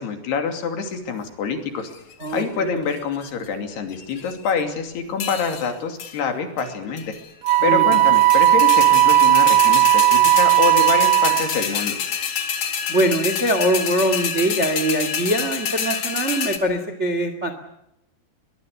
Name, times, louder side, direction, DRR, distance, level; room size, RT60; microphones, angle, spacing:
voice 1, 0.0-1.9 2.3-7.0 7.6-12.0, left 5 dB, 75° left, 5 dB, 4.7 m, -26 dB
sound 1, 1.9-2.4 3.0-3.5 3.9-4.6 5.2-5.7 6.0-6.2 6.6-6.7 7.0-7.6 7.9-16.6, left 7 dB, 50° left, 2.8 m, -27 dB
voice 2, 2.2-2.8 7.6-8.0 12.9-17.5, right 1 dB, 30° right, 8 dB, 1.3 m, -22 dB
Wind instrument woodwind instrument, 7.4-11.6, right 15 dB, 85° right, 1.5 m, -16 dB
23.0 x 21.0 x 8.3 m, 0.84 s
omnidirectional pair, 4.8 m